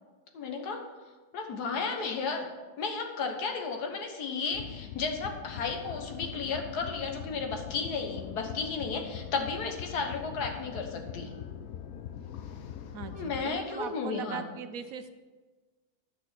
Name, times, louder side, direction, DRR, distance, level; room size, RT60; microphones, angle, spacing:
voice 1, 0.3-0.9 1.3-2.5 2.8-11.3 13.1-14.4, left 4 dB, 85° left, 4 dB, 1.8 m, -33 dB
sound 1, 4.5-13.5, left 9 dB, 70° left, 1.1 m, -42 dB
voice 2, 12.9-15.1, right 8 dB, 70° right, 9 dB, 1.1 m, -40 dB
11.0 x 6.1 x 5.9 m, 1.3 s
omnidirectional pair, 1.6 m